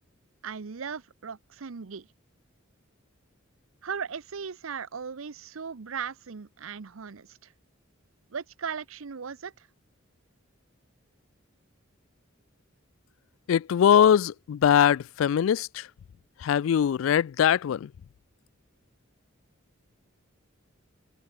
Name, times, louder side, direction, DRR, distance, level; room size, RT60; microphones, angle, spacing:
voice 1, 0.4-2.1 3.8-7.5 8.3-9.7, right 6 dB, 85° right, 0.7 m, -37 dB
voice 2, 13.5-15.9 16.4-17.9, left 8 dB, 75° left, 0.3 m, -22 dB
open air
head